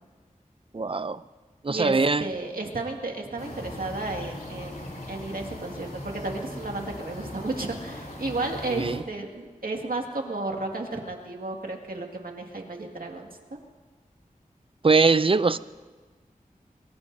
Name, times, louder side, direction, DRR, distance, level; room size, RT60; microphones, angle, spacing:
voice 1, 0.7-1.2 1.6-2.2 8.7-9.0 14.8-15.6, right 4 dB, 40° right, 0.5 m, -21 dB
voice 2, 1.7-13.3, right 2 dB, 85° right, 2.0 m, -33 dB
sound 1, 3.4-9.0, left 1 dB, 80° left, 3.1 m, -39 dB
23.0 x 22.5 x 2.7 m
wide cardioid pair, 60°, 15 cm